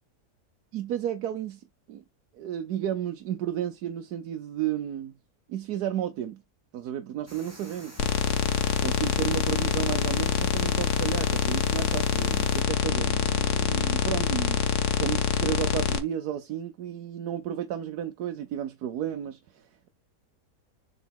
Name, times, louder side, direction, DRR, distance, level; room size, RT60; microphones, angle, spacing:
voice 1, 0.7-2.0 2.3-5.1 5.5-6.4 6.7-8.1 8.8-14.6 15.0-19.9, right 10 dB, 85° right, 1.3 m, -33 dB
sound 1, 7.3-12.6, right 1 dB, 10° right, 2.3 m, -48 dB
sound 2, 8.0-16.0, left 8 dB, 85° left, 1.5 m, -25 dB
7.1 x 4.1 x 3.5 m
omnidirectional pair, 1.6 m